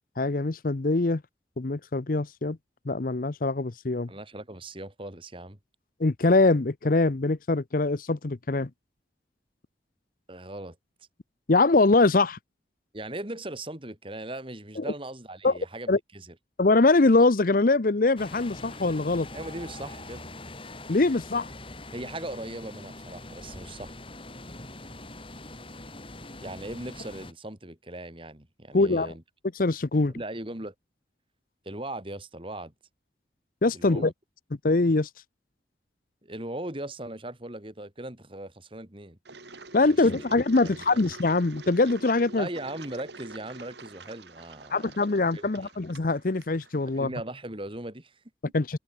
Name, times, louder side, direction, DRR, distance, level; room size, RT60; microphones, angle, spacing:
voice 1, 0.2-1.2 1.6-2.6 2.9-4.1 6.0-8.7 11.5-12.4 14.8-14.9 15.4-15.5 15.9-16.0 16.6-19.3 20.9-21.5 28.7-29.1 29.6-30.1 33.6-34.1 34.6-35.1 39.7-42.5 44.7-47.1 48.5-48.8, left 3 dB, 50° left, 0.8 m, -23 dB
voice 2, 4.1-5.6 10.3-10.8 12.9-16.3 19.3-20.2 21.9-24.0 26.4-29.2 30.1-30.7 31.6-32.7 33.7-34.1 36.2-39.2 39.8-40.2 40.6-41.0 42.4-44.9 45.3-45.8 46.9-48.5, right 1 dB, 30° right, 3.4 m, -39 dB
sound 1, 18.2-27.3, left 2 dB, 30° left, 6.1 m, -43 dB
Engine, 39.2-47.0, right 3 dB, 75° right, 3.0 m, -46 dB
head